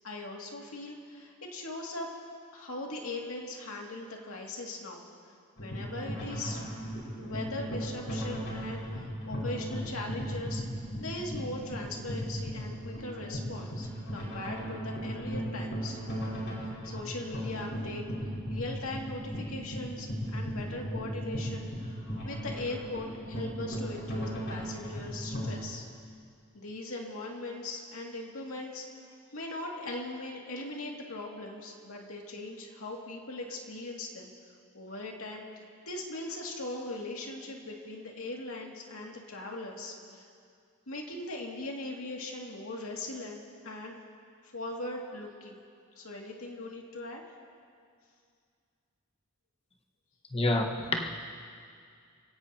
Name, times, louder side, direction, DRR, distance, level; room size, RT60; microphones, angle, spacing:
voice 1, 0.0-2.1 2.5-5.1 5.6-6.7 7.2-16.0 16.8-21.7 22.2-25.9 26.5-28.9 29.3-34.3 34.7-35.5 35.9-40.2 40.9-44.0 44.4-45.6 46.0-47.2, left 2 dB, 80° left, -1 dB, 2.4 m, -40 dB
sound 1, 5.6-25.5, equal, 60° left, 5.5 m, -37 dB
voice 2, 50.3-51.1, left 2 dB, 30° left, 1 dB, 1.4 m, -28 dB
28.5 x 17.0 x 2.9 m, 2.2 s
head